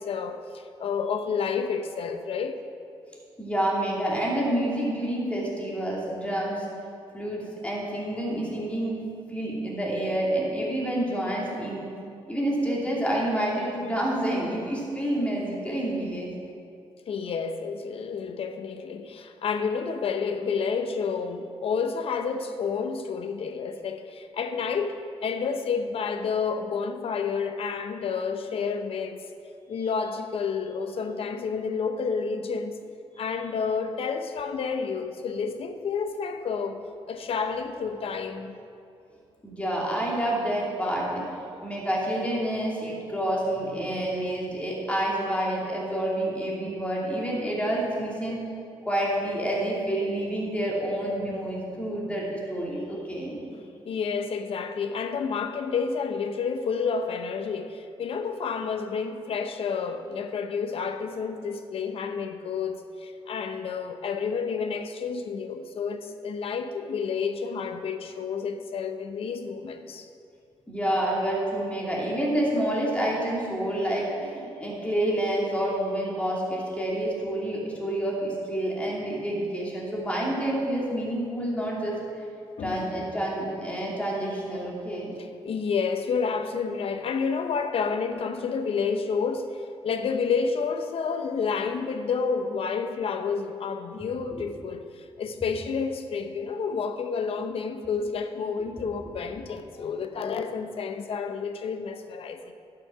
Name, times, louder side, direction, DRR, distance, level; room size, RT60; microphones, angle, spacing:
voice 1, 0.0-2.6 17.1-29.2 29.7-32.8 33.2-38.5 53.5-70.1 82.6-82.8 85.4-102.5, left 5 dB, 65° left, 0.8 m, -30 dB
voice 2, 3.4-6.7 7.1-9.0 9.3-11.9 12.3-16.4 39.4-41.2 41.6-48.4 48.8-53.4 70.7-82.2 82.6-85.2, right 1 dB, 10° left, 2.7 m, -28 dB
11.5 x 6.8 x 5.9 m
cardioid pair, 100°, 11 cm